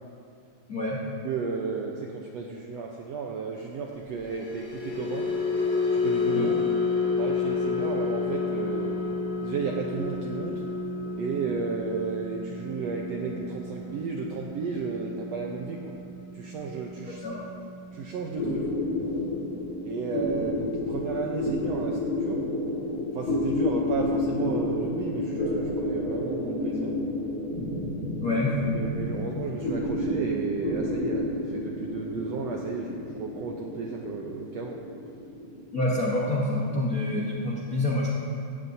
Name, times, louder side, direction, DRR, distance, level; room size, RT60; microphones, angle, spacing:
voice 1, 0.7-1.0 6.3-6.5 17.2-17.4 28.2-28.5 35.7-38.1, left 2 dB, 85° left, -5 dB, 0.7 m, -27 dB
voice 2, 1.2-5.3 5.9-6.6 7.2-9.0 9.4-10.6 11.2-16.0 16.3-17.2 17.9-18.7 19.8-22.4 23.1-26.9 28.7-34.8, right 4 dB, 80° right, 0 dB, 1.5 m, -33 dB
sound 1, 4.1-20.5 20.9-21.2 21.5-21.7, left 4 dB, 5° right, 3.1 m, -31 dB
sound 2, 18.4-37.1, left 1 dB, 35° left, 2.3 m, -30 dB
17.0 x 15.0 x 2.7 m, 2.5 s
omnidirectional pair, 4.0 m